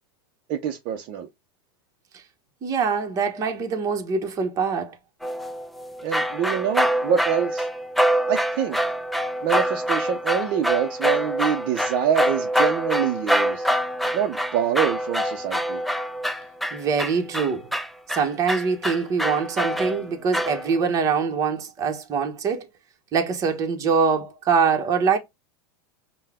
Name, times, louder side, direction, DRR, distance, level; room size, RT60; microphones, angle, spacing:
voice 1, 0.5-1.3 6.0-7.7 8.3-8.8 9.4-13.7 14.1-15.8, right 9 dB, 45° right, 0.7 m, -25 dB
voice 2, 2.6-5.0 16.7-17.7 18.1-22.7 23.1-25.2, right 5 dB, 30° right, 1.0 m, -24 dB
sound 1, 5.2-21.0, equal, ahead, 0.3 m, -25 dB
5.5 x 2.2 x 3.5 m
supercardioid pair, 135°, 12 cm